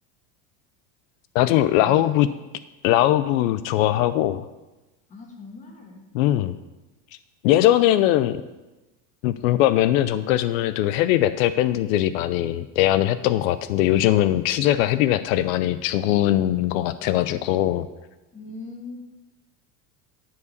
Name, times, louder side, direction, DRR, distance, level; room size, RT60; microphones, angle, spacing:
voice 1, 1.3-2.3 2.8-4.5 6.1-6.6 7.4-8.4 9.2-17.9, left 13 dB, 85° left, 13 dB, 0.6 m, -20 dB
voice 2, 5.1-6.0 18.3-19.0, left 3 dB, 20° left, 0 dB, 1.5 m, -39 dB
11.5 x 4.8 x 6.7 m, 1.1 s
cardioid pair, 180°, 39 cm